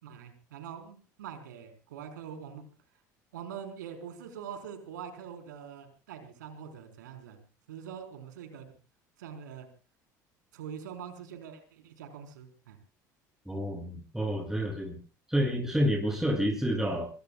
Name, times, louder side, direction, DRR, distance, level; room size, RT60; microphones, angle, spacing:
voice 1, 0.0-2.7 3.3-7.4 7.7-8.7 9.2-9.7 10.5-12.8, right 8 dB, 80° right, 5 dB, 4.2 m, -44 dB
voice 2, 13.5-15.0 15.3-17.1, equal, 5° right, 0 dB, 7.2 m, -29 dB
24.0 x 23.0 x 2.3 m, 0.35 s
hypercardioid pair, 70°, 10 cm